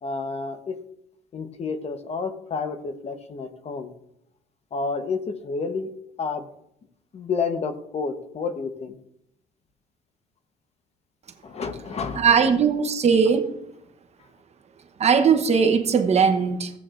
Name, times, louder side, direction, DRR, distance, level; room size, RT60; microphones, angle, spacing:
voice 1, 0.0-0.8 1.3-3.9 4.7-5.9 6.2-6.5 7.1-9.0 11.4-12.4, left 4 dB, 40° left, 1.1 m, -30 dB
voice 2, 12.2-13.5 15.0-16.7, right 6 dB, 40° right, 1.0 m, -19 dB
15.0 x 8.4 x 2.5 m
cardioid pair, 110°, 17 cm